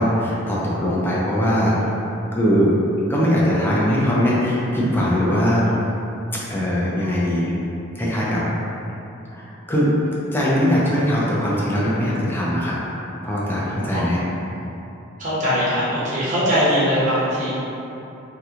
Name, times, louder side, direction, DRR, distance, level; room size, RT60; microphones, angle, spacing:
voice 1, 0.0-1.7 2.3-2.7 3.1-5.7 6.5-7.5 8.0-8.4 9.3-9.9 10.3-12.8 13.2-14.2, equal, 10° left, -7 dB, 0.5 m, -20 dB
voice 2, 15.2-17.5, equal, 40° right, -9 dB, 0.9 m, -21 dB
2.9 x 2.2 x 3.5 m, 2.9 s
head